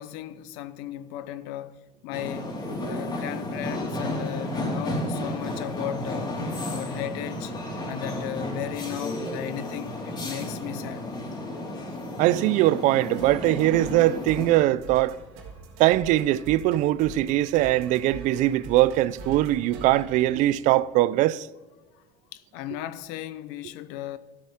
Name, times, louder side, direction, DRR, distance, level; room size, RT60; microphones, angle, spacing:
voice 1, 0.0-2.5 2.8-7.5 7.9-11.0 21.9-22.0 22.3-24.2, left 11 dB, 85° left, 0.8 m, -36 dB
sound 1, 2.1-14.5, left 1 dB, 30° left, 3.7 m, -32 dB
voice 2, 12.2-15.2 15.8-21.5, right 15 dB, 65° right, 0.5 m, -21 dB
sound 2, 12.4-21.0, right 3 dB, 85° right, 3.0 m, -44 dB
14.0 x 8.5 x 3.6 m
cardioid pair, 125°, 14 cm